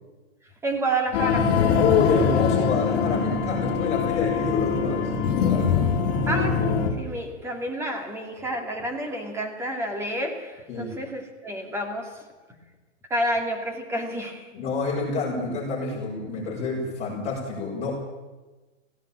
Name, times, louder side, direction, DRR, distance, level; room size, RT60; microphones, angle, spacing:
voice 1, 0.4-1.5 6.3-12.3 13.1-14.5, right 1 dB, 5° right, 3 dB, 2.5 m, -29 dB
sound 1, 1.1-6.9, left 6 dB, 35° left, 3.2 m, -23 dB
voice 2, 1.6-5.9 10.7-10.9 14.5-18.0, left 4 dB, 15° left, -4 dB, 6.8 m, -28 dB
17.5 x 17.0 x 8.9 m, 1.2 s
hypercardioid pair, 155°, 37 cm